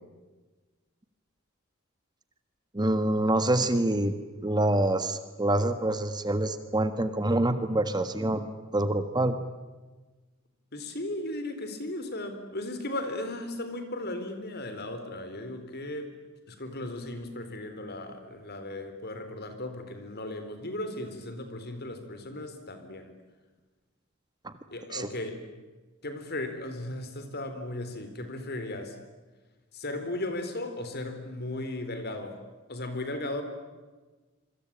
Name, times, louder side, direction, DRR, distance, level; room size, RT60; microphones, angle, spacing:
voice 1, 2.7-4.1 4.4-9.3 24.4-24.5 24.9-25.1, right 1 dB, 20° right, 10 dB, 1.5 m, -26 dB
voice 2, 10.7-16.1 16.5-23.1 24.7-25.4 26.0-29.0 29.7-32.4 32.7-33.4, left 1 dB, 50° left, 9 dB, 4.2 m, -36 dB
27.0 x 25.0 x 8.9 m, 1.3 s
head